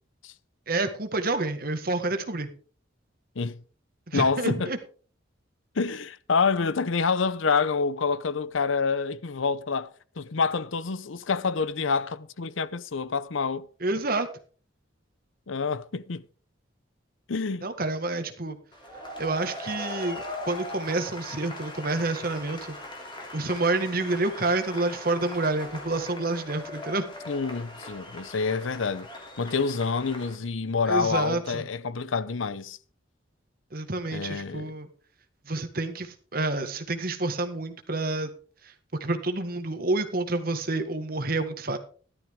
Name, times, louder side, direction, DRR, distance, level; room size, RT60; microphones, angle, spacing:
voice 1, 0.7-2.5 4.1-4.8 13.8-14.3 17.6-18.6 19.2-22.8 23.3-27.1 30.9-31.6 33.7-34.9 35.5-38.3 38.6-38.7 39.0-41.8, right 2 dB, 50° right, 1.7 m, -28 dB
voice 2, 4.1-4.7 5.8-9.9 10.2-13.7 15.5-16.2 17.3-17.7 27.3-29.1 29.4-32.8 34.1-34.7, left 5 dB, 85° left, 0.7 m, -27 dB
sound 1, 18.7-30.4, left 1 dB, 25° left, 3.0 m, -40 dB
14.0 x 12.0 x 3.7 m
head